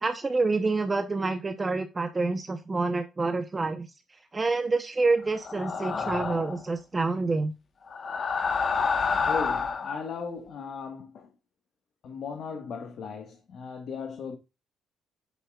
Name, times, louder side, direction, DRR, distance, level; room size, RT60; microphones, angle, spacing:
voice 1, 0.0-7.5, right 3 dB, 25° right, 0.8 m, -28 dB
sound 1, 5.4-6.6 7.9-10.0, left 5 dB, 45° left, 1.2 m, -28 dB
voice 2, 9.2-11.3 12.0-14.4, left 6 dB, 65° left, 1.5 m, -37 dB
8.4 x 7.3 x 2.4 m
cardioid pair, 90°, 0 cm